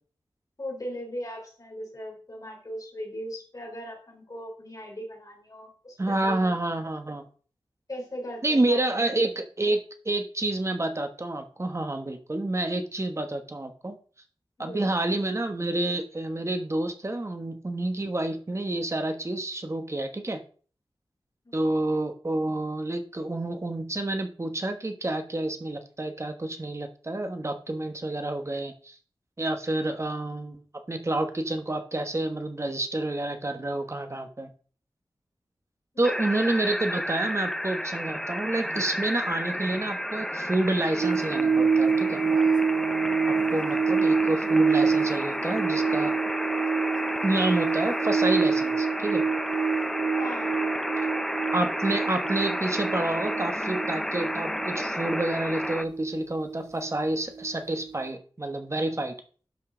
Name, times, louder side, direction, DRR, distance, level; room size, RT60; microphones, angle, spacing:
voice 1, 0.6-6.6 7.9-8.8 14.6-14.9 21.4-21.6 50.2-50.8, equal, 40° left, 1 dB, 3.4 m, -39 dB
voice 2, 6.0-7.3 8.4-14.0 14.6-20.4 21.5-29.0 29.4-34.5 36.0-42.2 43.5-46.1 47.2-49.2 51.5-59.1, right 2 dB, 35° right, 7 dB, 1.3 m, -29 dB
sound 1, 36.0-55.8, equal, 5° left, 0.5 m, -32 dB
sound 2, 41.0-57.6 57.8-58.0, right 5 dB, 55° right, 0.3 m, -27 dB
11.5 x 5.5 x 3.9 m, 0.42 s
wide cardioid pair, 85°, 9 cm